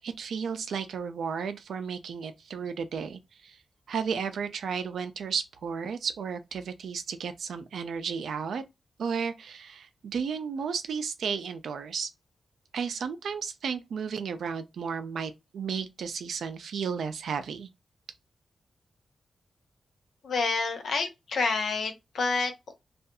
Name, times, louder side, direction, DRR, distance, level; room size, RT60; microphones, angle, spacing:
voice 1, 0.0-3.6 3.9-8.6 9.0-12.1 12.7-17.7, right 6 dB, 85° right, 0.4 m, -33 dB
voice 2, 20.2-22.7, left 4 dB, 80° left, 0.7 m, -28 dB
2.6 x 2.4 x 2.2 m
cardioid pair, 50°, 0 cm